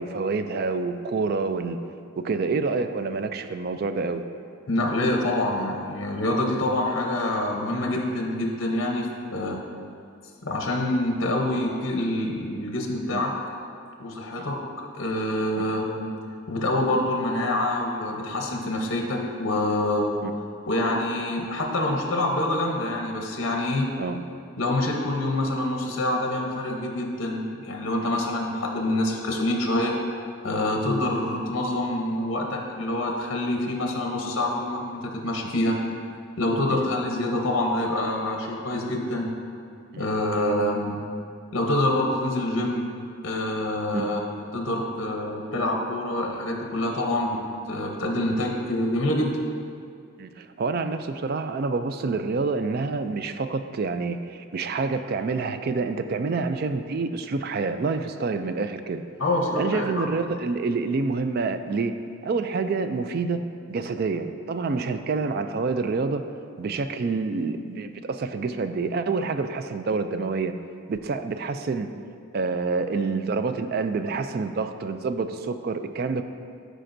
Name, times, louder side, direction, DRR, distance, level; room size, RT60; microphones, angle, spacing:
voice 1, 0.0-1.8 2.2-4.2 13.1-13.2 14.4-14.5 15.6-15.7 20.2-20.3 24.0-24.2 28.0-28.1 36.7-36.8 39.9-40.1 43.9-44.1 50.2-59.0 59.6-62.0 62.2-63.4 63.7-66.3 66.6-70.5 70.9-71.9 72.3-76.2, right 4 dB, 45° right, 9 dB, 0.3 m, -27 dB
voice 2, 4.7-9.6 10.4-13.3 14.0-16.1 16.5-20.1 20.6-23.9 24.6-30.0 30.4-35.8 36.4-39.3 40.0-41.0 41.5-42.9 43.2-44.2 44.5-47.4 47.7-49.4 59.2-60.1, left 1 dB, 60° left, 1 dB, 0.8 m, -26 dB
13.0 x 5.0 x 2.6 m, 2.3 s
head